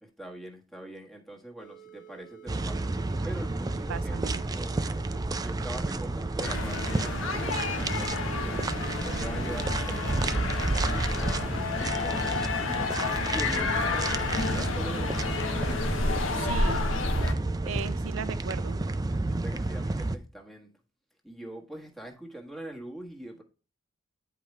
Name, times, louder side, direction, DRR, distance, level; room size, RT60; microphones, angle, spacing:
voice 1, 0.0-2.9 3.2-4.2 4.5-4.9 5.4-8.7 9.0-12.9 13.3-15.4 19.3-20.7 21.2-23.4, right 1 dB, ahead, 1.5 m, -43 dB
sound 1, 1.6-17.1, right 9 dB, 45° left, 0.6 m, -51 dB
sound 2, 2.5-20.2, right 2 dB, 20° right, 0.4 m, -31 dB
voice 2, 3.9-4.4 16.0-17.0 17.6-18.8, right 6 dB, 90° right, 0.4 m, -37 dB
sound 3, 6.4-17.3, left 3 dB, 85° left, 1.2 m, -30 dB
9.8 x 4.7 x 3.2 m
head